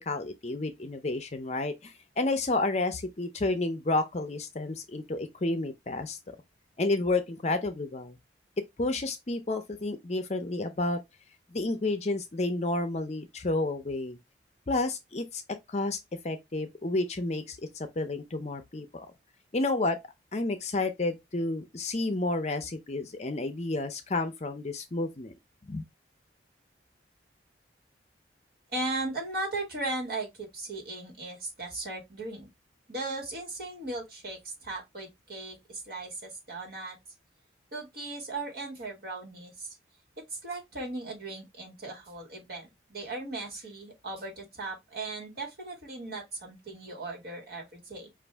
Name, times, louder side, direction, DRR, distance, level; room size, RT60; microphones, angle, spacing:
voice 1, 0.1-6.2 6.8-8.2 8.8-11.0 11.5-14.2 14.7-15.4 15.7-16.0 16.2-19.1 19.5-20.0 20.3-25.3 25.7-25.8, left 2 dB, 35° left, 0.6 m, -30 dB
voice 2, 28.7-32.5 32.9-37.0 37.7-39.7 40.3-48.1, right 2 dB, 55° right, 2.0 m, -37 dB
5.1 x 2.5 x 3.4 m
head